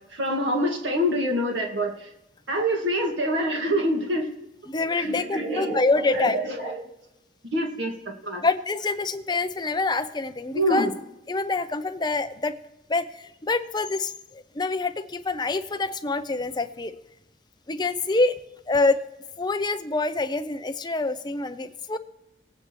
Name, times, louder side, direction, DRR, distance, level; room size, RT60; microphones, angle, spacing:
voice 1, 0.1-2.1 2.5-4.3 5.0-6.9 7.5-8.4 10.5-10.9, equal, 90° right, 1 dB, 1.9 m, -26 dB
voice 2, 4.7-6.4 8.4-10.9 11.3-12.5 12.9-17.0 17.7-18.4 18.7-19.0 19.4-22.0, left 3 dB, 25° left, 9 dB, 0.6 m, -26 dB
19.0 x 8.9 x 3.1 m, 0.87 s
head